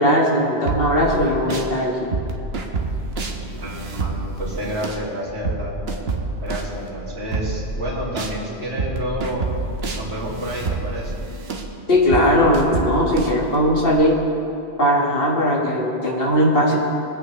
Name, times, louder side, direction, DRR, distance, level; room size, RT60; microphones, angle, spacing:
voice 1, 0.0-1.9 11.9-14.2 14.8-16.8, equal, 60° left, -2 dB, 2.0 m, -18 dB
sound 1, 0.7-1.7 2.1-8.4 8.8-14.0, right 3 dB, 70° right, 1.3 m, -28 dB
voice 2, 3.5-5.7 6.4-9.5 9.9-11.1, equal, 85° right, -8 dB, 2.8 m, -29 dB
23.5 x 8.4 x 3.2 m, 2.8 s
omnidirectional pair, 1.1 m